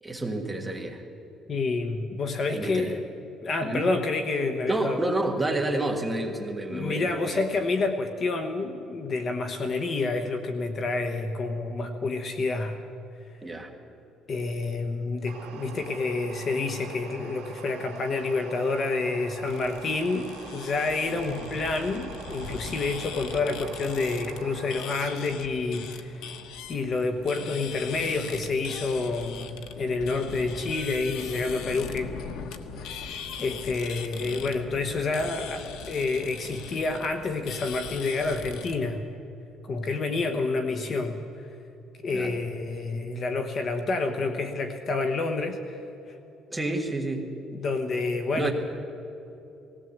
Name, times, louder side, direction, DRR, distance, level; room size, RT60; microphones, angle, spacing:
voice 1, 0.0-1.0 2.5-2.9 3.6-3.9 4.7-7.4 13.4-13.7 21.3-21.5 42.1-42.3 46.5-47.3 48.3-48.5, right 2 dB, 5° right, 1 dB, 1.7 m, -29 dB
voice 2, 1.5-3.0 3.4-5.0 6.7-12.8 14.3-20.3 20.5-26.3 26.7-32.1 32.8-39.0 39.6-41.5 42.0-45.8 46.1-46.2 47.5-48.5, left 3 dB, 30° left, 6 dB, 1.1 m, -28 dB
sound 1, 15.3-25.2, right 7 dB, 80° right, 2.7 m, -44 dB
sound 2, 19.5-38.8, left 6 dB, 85° left, 1.3 m, -41 dB
19.0 x 17.0 x 8.0 m, 2.9 s
cardioid pair, 175°, 0 cm